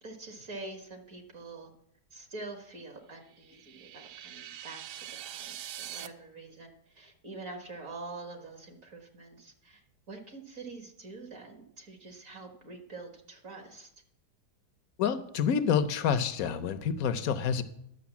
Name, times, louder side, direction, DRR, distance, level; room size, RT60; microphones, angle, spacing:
voice 1, 0.0-1.7 2.1-5.0 5.3-13.9, right 3 dB, 50° right, 4 dB, 1.8 m, -45 dB
sound 1, 3.3-6.1, right 11 dB, 75° right, 1.2 m, -43 dB
voice 2, 15.0-17.6, left 7 dB, 65° left, 11 dB, 1.1 m, -28 dB
11.0 x 6.6 x 7.1 m, 0.72 s
omnidirectional pair, 1.8 m